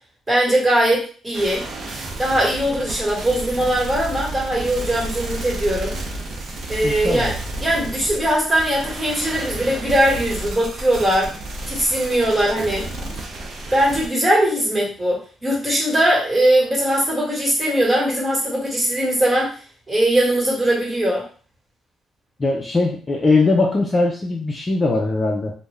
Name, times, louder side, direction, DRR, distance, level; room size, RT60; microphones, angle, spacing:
voice 1, 0.3-1.6 2.2-5.9 6.7-11.3 11.7-12.8 13.7-19.5 19.9-21.2, right 1 dB, 20° right, -4 dB, 1.5 m, -20 dB
sound 1, 1.3-14.1, right 1 dB, 60° right, 0.7 m, -31 dB
voice 2, 6.8-7.3 22.4-25.5, left 3 dB, 30° left, -1 dB, 0.6 m, -20 dB
2.5 x 2.3 x 3.3 m, 0.39 s
cardioid pair, 90°, 0 cm